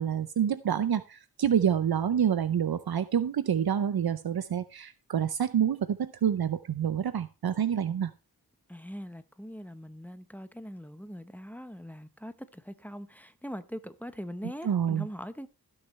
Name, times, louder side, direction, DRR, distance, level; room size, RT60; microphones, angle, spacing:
voice 1, 0.0-8.1 14.6-15.1, right 8 dB, 75° right, 0.6 m, -27 dB
voice 2, 8.7-15.5, equal, 5° left, 0.9 m, -42 dB
16.5 x 6.5 x 3.2 m
wide cardioid pair, 55°, 37 cm